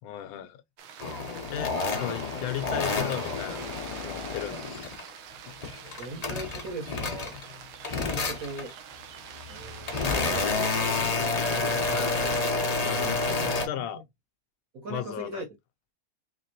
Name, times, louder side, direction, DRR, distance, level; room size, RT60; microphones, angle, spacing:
voice 1, 0.0-0.6 1.5-4.8 11.9-12.4 12.8-14.0 14.9-15.4, left 11 dB, 80° left, 1.4 m, -36 dB
sound 1, 0.8-12.5, right 8 dB, 80° right, 1.5 m, -45 dB
sound 2, 1.0-5.1 5.5-7.5 7.8-8.7 9.4-13.7, left 3 dB, 60° left, 0.4 m, -29 dB
voice 2, 6.0-7.4 7.9-8.7 9.5-10.8 13.2-13.9 14.7-15.4, right 2 dB, 55° right, 1.1 m, -39 dB
4.3 x 3.3 x 2.8 m
omnidirectional pair, 2.3 m